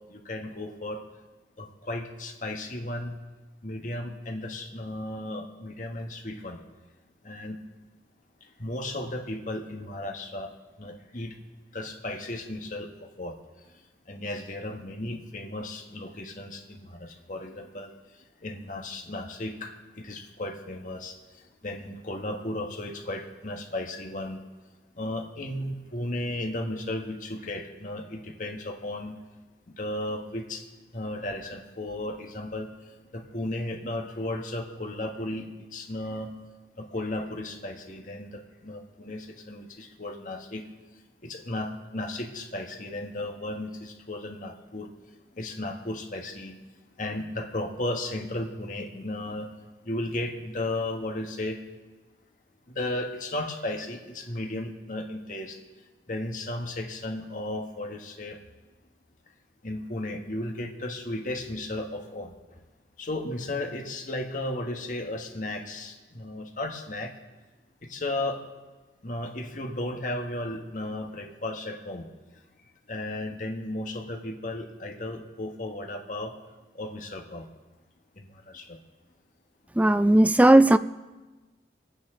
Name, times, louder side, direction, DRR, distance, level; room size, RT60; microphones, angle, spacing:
voice 1, 0.1-1.0 1.6-3.1 3.6-6.6 7.2-7.6 8.6-10.5 10.8-11.3 11.7-13.4 14.1-17.9 18.4-19.7 20.0-21.1 21.6-24.4 25.0-29.1 29.8-30.6 30.9-32.7 33.1-36.3 36.8-40.6 41.2-44.9 45.4-46.6 47.0-49.5 49.8-51.6 52.7-55.6 56.1-58.4 59.6-62.3 63.0-67.1 67.8-68.4 69.0-72.0 72.9-76.3 76.8-77.4 78.2-78.8, left 1 dB, 45° left, 3 dB, 1.5 m, -34 dB
voice 2, 79.8-80.8, right 1 dB, 10° right, 13 dB, 0.3 m, -16 dB
25.0 x 9.3 x 3.8 m, 1.2 s
head